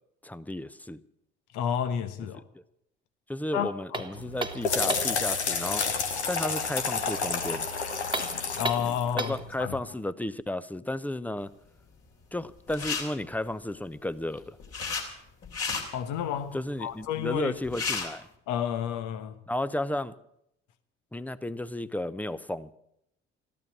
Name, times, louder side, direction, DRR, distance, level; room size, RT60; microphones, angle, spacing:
voice 1, 0.2-1.0 2.5-2.6 3.3-7.7 9.1-11.5 12.3-14.6 16.5-18.3 19.5-20.1 21.1-22.7, left 1 dB, 5° left, 0.7 m, -33 dB
voice 2, 1.5-2.4 3.5-4.3 8.6-9.8 15.9-17.5 18.5-19.4, left 9 dB, 60° left, 1.3 m, -31 dB
sound 1, 3.9-5.2 8.0-9.5, right 2 dB, 15° right, 1.4 m, -34 dB
sound 2, 4.2-9.7, left 5 dB, 85° left, 1.2 m, -30 dB
sound 3, 12.7-13.0 14.2-15.0 15.4-15.8 17.3-17.4 17.6-18.1, left 5 dB, 45° left, 3.4 m, -31 dB
14.5 x 12.0 x 7.3 m
figure-of-eight pair, 50°, 33 cm